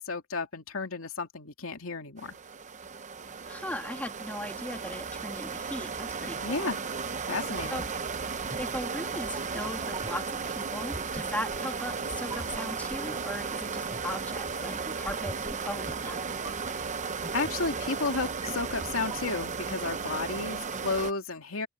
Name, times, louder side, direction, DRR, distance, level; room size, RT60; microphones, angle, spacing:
voice 1, 0.0-2.4 6.4-6.9 7.3-7.8 17.3-21.7, left 3 dB, 80° left, 2.6 m, -32 dB
sound 1, 2.2-21.1, right 5 dB, 35° right, 0.8 m, -35 dB
voice 2, 3.5-6.7 7.7-7.9 8.6-16.3, left 1 dB, 10° left, 2.6 m, -38 dB
sound 2, 7.6-19.6, right 1 dB, 20° right, 5.6 m, -46 dB
open air
head